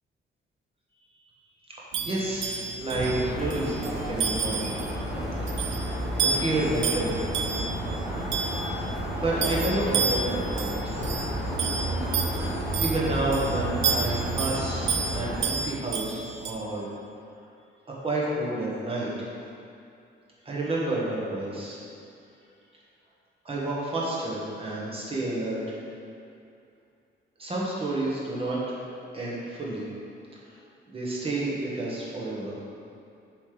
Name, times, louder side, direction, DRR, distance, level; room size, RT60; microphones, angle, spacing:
voice 1, 1.7-4.8 5.4-5.7 6.1-7.3 9.0-10.9 12.8-16.9 18.0-19.3 20.4-21.8 23.4-25.6 27.4-28.6 29.1-29.9 30.9-32.5, right 2 dB, 30° right, -5 dB, 1.1 m, -30 dB
sound 1, 1.9-16.5, right 5 dB, 70° right, 0.5 m, -32 dB
sound 2, 2.9-15.5, right 1 dB, ahead, 1.3 m, -31 dB
6.9 x 3.2 x 5.0 m, 2.5 s
wide cardioid pair, 170°, 20 cm